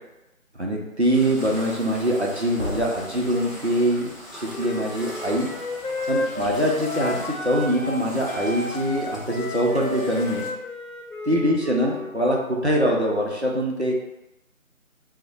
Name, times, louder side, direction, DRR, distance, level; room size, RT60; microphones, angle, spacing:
voice 1, 0.5-5.5 6.1-10.5 11.3-14.1, equal, 50° right, -2 dB, 0.5 m, -23 dB
sound 1, 1.1-10.5, equal, ahead, 0.5 m, -41 dB
sound 2, 2.6-3.4 6.3-6.6, left 1 dB, 50° left, 0.8 m, -35 dB
Wind instrument woodwind instrument, 4.5-8.0 8.3-12.1, left 2 dB, 85° left, 0.7 m, -32 dB
2.4 x 2.0 x 3.9 m, 0.97 s
figure-of-eight pair, 170°, 42 cm